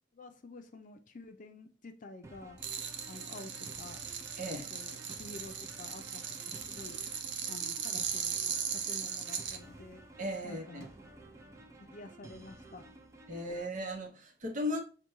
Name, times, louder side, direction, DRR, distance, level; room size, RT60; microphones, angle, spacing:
voice 1, 0.1-2.6 3.1-4.0 4.5-6.2 6.7-7.0 7.5-10.0 10.4-10.9 11.8-12.8, left 2 dB, 45° left, 0.5 m, -49 dB
sound 1, 2.2-13.7, right 1 dB, 15° right, 0.5 m, -53 dB
sound 2, 2.6-9.6, right 7 dB, 75° right, 0.5 m, -38 dB
voice 2, 4.4-4.7 10.2-10.9 13.3-14.8, left 1 dB, 45° right, 0.8 m, -36 dB
6.6 x 2.2 x 3.0 m
head